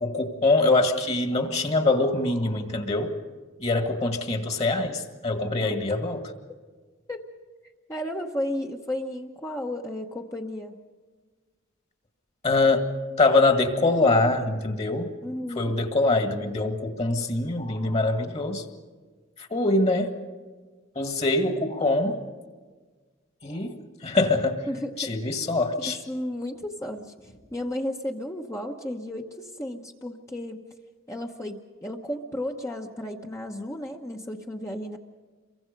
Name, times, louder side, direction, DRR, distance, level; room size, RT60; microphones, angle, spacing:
voice 1, 0.0-3.1 3.6-6.3 12.4-12.9 13.2-15.1 15.6-18.7 19.4-20.1 21.0-22.2 23.4-24.7 25.0-26.0, left 2 dB, 30° left, 6 dB, 1.8 m, -24 dB
voice 2, 7.9-10.8 15.2-15.7 24.7-25.1 25.8-30.6 31.1-35.0, left 1 dB, 15° left, 1 dB, 1.0 m, -33 dB
28.0 x 23.5 x 5.3 m, 1.4 s
head